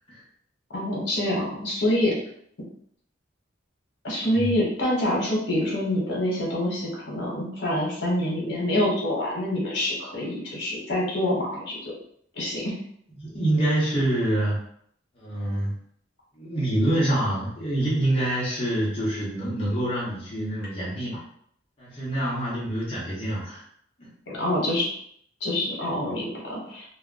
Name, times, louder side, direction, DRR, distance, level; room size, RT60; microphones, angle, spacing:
voice 1, 0.7-2.2 4.0-11.8 12.3-12.7 24.3-24.9 25.4-26.8, left 1 dB, 70° left, -4 dB, 1.0 m, -26 dB
voice 2, 13.2-14.6 15.2-15.7 16.4-21.2 21.8-23.6 24.0-24.1, right 1 dB, 30° left, -7 dB, 0.8 m, -26 dB
2.3 x 2.1 x 3.7 m, 0.66 s
head